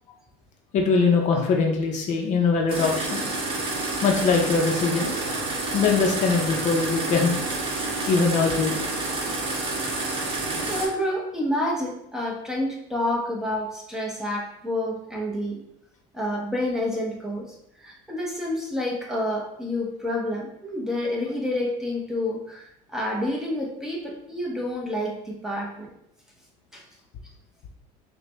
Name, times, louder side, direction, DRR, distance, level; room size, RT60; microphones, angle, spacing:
voice 1, 0.7-3.2 4.0-5.2 5.7-7.3 8.1-8.8, left 4 dB, 50° left, 2 dB, 0.6 m, -22 dB
sound 1, 2.7-10.9, right 2 dB, 35° right, 1.1 m, -29 dB
voice 2, 10.7-15.6 16.1-17.5 17.8-25.9 26.7-26.8, left 1 dB, 5° right, -3 dB, 0.8 m, -29 dB
4.8 x 2.2 x 3.1 m, 0.76 s
supercardioid pair, 120°, 16 cm